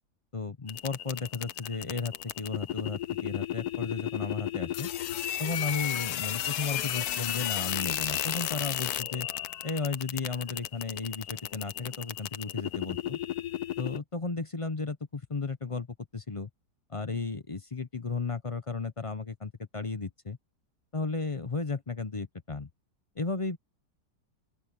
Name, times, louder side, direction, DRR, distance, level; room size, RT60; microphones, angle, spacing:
voice 1, 0.3-4.9 5.4-9.3 9.6-13.2 13.8-15.9 16.1-16.5 16.9-20.4 20.9-22.7 23.2-23.6, left 4 dB, 30° left, 0.6 m, -34 dB
sound 1, 0.7-14.0, left 12 dB, 75° left, 1.2 m, -33 dB
open air
omnidirectional pair, 1.7 m